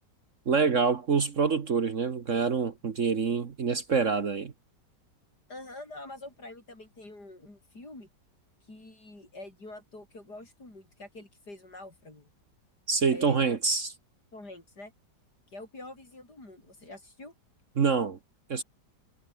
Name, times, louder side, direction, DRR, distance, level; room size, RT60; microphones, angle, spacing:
voice 1, 0.5-4.5 12.9-13.9 17.8-18.2 18.5-18.6, right 5 dB, 45° right, 1.5 m, -26 dB
voice 2, 5.5-8.1 8.7-12.3 13.1-13.6 14.3-14.9 15.5-17.3, left 2 dB, 65° left, 8.1 m, -46 dB
omnidirectional pair, 1.9 m